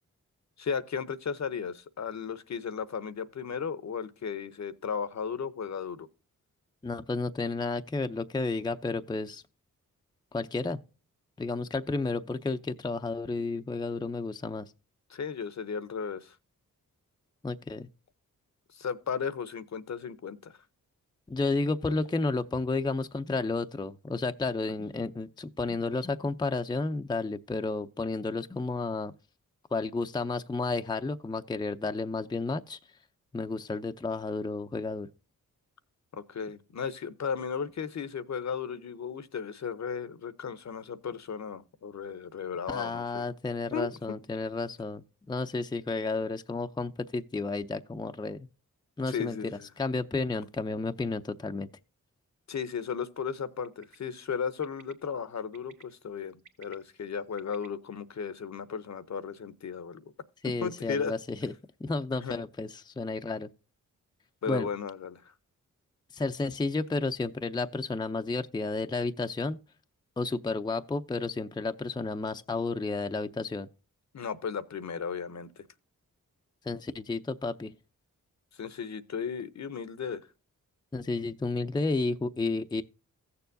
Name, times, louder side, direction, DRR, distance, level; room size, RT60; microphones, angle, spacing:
voice 1, 0.6-6.1 15.1-16.4 18.7-20.6 36.1-43.3 43.7-43.9 49.1-49.7 52.5-60.0 60.4-61.1 62.2-62.4 64.4-65.3 74.1-75.7 78.5-80.2, left 6 dB, 50° left, 0.8 m, -35 dB
voice 2, 6.8-9.4 10.3-10.8 11.4-14.7 17.4-17.9 21.3-29.1 29.7-32.8 33.3-35.1 42.7-48.5 49.0-49.4 49.8-51.7 60.4-61.5 61.8-63.5 64.5-64.7 66.1-69.6 70.2-73.7 76.6-77.7 80.9-82.8, left 3 dB, 15° left, 0.5 m, -32 dB
Bird, 53.6-54.0 54.6-54.9 55.5-55.8 56.3-57.7, right 6 dB, 60° right, 1.3 m, -55 dB
15.0 x 6.9 x 2.6 m
cardioid pair, 50°, 34 cm